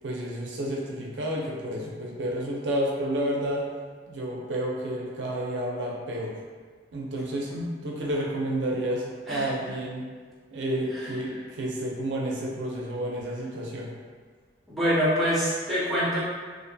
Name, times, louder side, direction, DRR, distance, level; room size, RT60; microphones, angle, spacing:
voice 1, 0.0-3.7 4.1-6.4 6.9-7.5 7.8-10.1 10.5-13.9, right 1 dB, 90° right, -2 dB, 0.5 m, -30 dB
voice 2, 14.7-16.2, equal, ahead, -11 dB, 0.6 m, -25 dB
2.5 x 2.2 x 2.6 m, 1.5 s
head